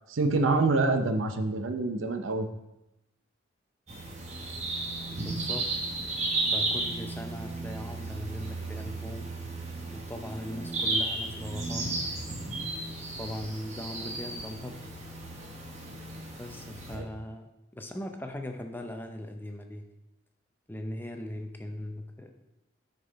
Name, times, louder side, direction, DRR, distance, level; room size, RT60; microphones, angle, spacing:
voice 1, 0.1-2.5 16.9-17.0, right 3 dB, 90° right, 6 dB, 0.7 m, -26 dB
sound 1, 3.9-17.0, right 2 dB, 35° right, 1.2 m, -34 dB
voice 2, 5.1-5.6 6.5-9.3 9.9-11.9 13.2-14.8 16.4-19.9 20.7-22.3, left 1 dB, 10° left, 4 dB, 0.6 m, -39 dB
6.4 x 5.7 x 4.1 m, 0.92 s
head